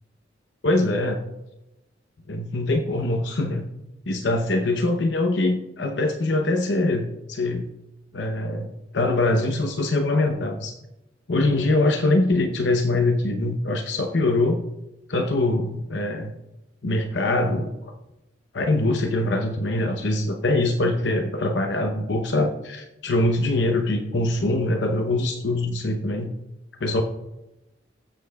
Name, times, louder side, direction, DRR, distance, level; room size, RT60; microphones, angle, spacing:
voice 1, 0.6-1.2 2.3-3.7 4.1-7.7 8.1-10.7 11.3-14.6 15.1-16.3 16.8-17.9 18.5-26.3 26.8-27.0, left 2 dB, 70° left, 4 dB, 0.8 m, -23 dB
20.5 x 7.7 x 2.3 m, 0.95 s
head